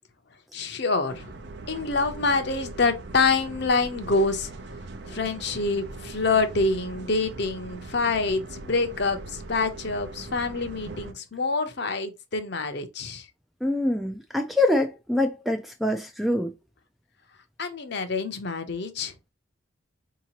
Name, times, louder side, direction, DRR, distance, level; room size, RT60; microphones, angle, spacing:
voice 1, 0.5-1.3 1.7-4.5 5.0-13.3 17.6-19.1, left 3 dB, 55° left, 0.7 m, -26 dB
sound 1, 1.1-11.1, right 2 dB, 55° right, 0.6 m, -41 dB
voice 2, 13.6-16.5, left 1 dB, ahead, 0.3 m, -25 dB
4.7 x 2.9 x 2.9 m
head